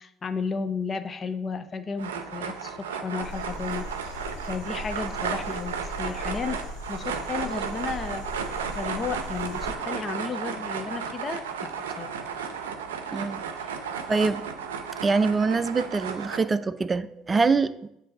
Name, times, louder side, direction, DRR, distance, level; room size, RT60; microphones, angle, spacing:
voice 1, 0.0-6.6 6.9-8.3 8.7-11.7 12.0-12.3, left 5 dB, 35° left, 10 dB, 0.6 m, -33 dB
sound 1, 2.0-16.4, right 6 dB, 85° right, 0.5 m, -34 dB
sound 2, 3.2-9.7, left 1 dB, 75° left, 1.1 m, -39 dB
voice 2, 13.1-13.4 14.1-14.4 15.0-17.9, right 4 dB, 25° right, 13 dB, 0.4 m, -24 dB
7.6 x 2.7 x 5.8 m, 0.78 s
hypercardioid pair, 65°, 0 cm